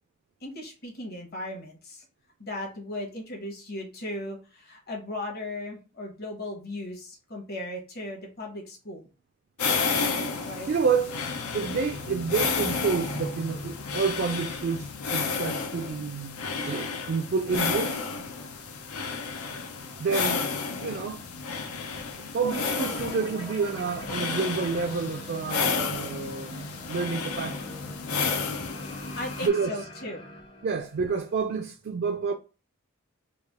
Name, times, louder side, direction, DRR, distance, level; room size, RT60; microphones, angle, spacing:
voice 1, 0.4-2.0 2.4-9.0 10.4-10.7 29.2-30.3, left 1 dB, 45° left, 1.1 m, -37 dB
sound 1, 9.6-29.5, left 5 dB, 90° left, 0.6 m, -32 dB
voice 2, 10.7-11.2 11.5-18.1 20.0-20.5 20.8-21.2 22.3-27.8 29.4-29.8 30.6-32.3, right 5 dB, 50° right, 0.3 m, -29 dB
sound 2, 22.4-31.4, left 1 dB, 20° left, 0.5 m, -43 dB
3.3 x 2.4 x 3.5 m
head